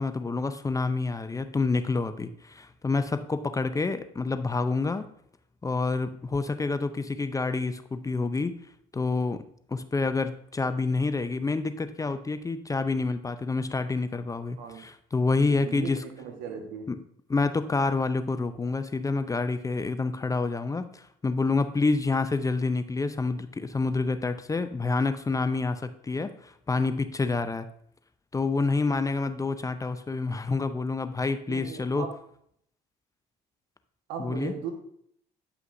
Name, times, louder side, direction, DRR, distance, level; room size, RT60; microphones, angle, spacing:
voice 1, 0.0-5.0 5.6-8.5 8.9-9.4 9.7-16.0 16.9-17.0 17.3-27.7 28.3-32.1 34.2-34.5, left 3 dB, 20° left, 11 dB, 0.5 m, -28 dB
voice 2, 15.5-16.9 31.5-32.1 34.1-34.7, right 6 dB, 75° right, 4 dB, 1.4 m, -37 dB
9.4 x 5.7 x 2.6 m, 0.68 s
supercardioid pair, 75°, 18 cm